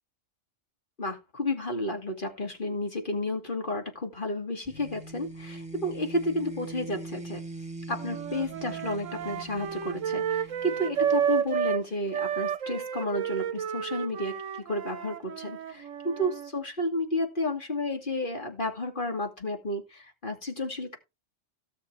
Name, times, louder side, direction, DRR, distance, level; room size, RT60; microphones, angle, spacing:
voice 1, 1.0-7.4 7.9-21.0, left 1 dB, 40° left, 3 dB, 2.6 m, -32 dB
sound 1, 4.6-11.3, right 2 dB, 5° right, 1.4 m, -42 dB
sound 2, 8.0-11.8 12.1-16.5, right 8 dB, 80° right, 1.1 m, -31 dB
17.5 x 6.8 x 3.3 m, 0.25 s
omnidirectional pair, 1.3 m